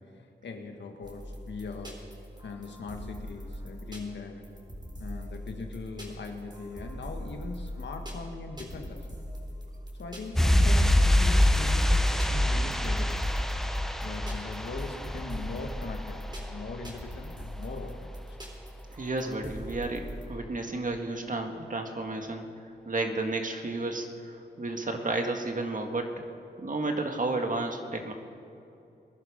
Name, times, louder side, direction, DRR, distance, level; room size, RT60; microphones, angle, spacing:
voice 1, 0.0-2.0 2.4-4.5 5.0-9.2 9.9-13.3 14.0-18.1, left 4 dB, 85° left, 4 dB, 1.6 m, -40 dB
sound 1, 1.0-20.3, equal, 25° right, 3.8 m, -42 dB
sound 2, 10.4-16.9 17.1-17.2, left 1 dB, ahead, 1.0 m, -25 dB
voice 2, 18.9-26.1 26.6-28.1, right 2 dB, 50° right, 4 dB, 1.9 m, -32 dB
21.0 x 11.5 x 5.2 m, 2.7 s
cardioid pair, 55°, 18 cm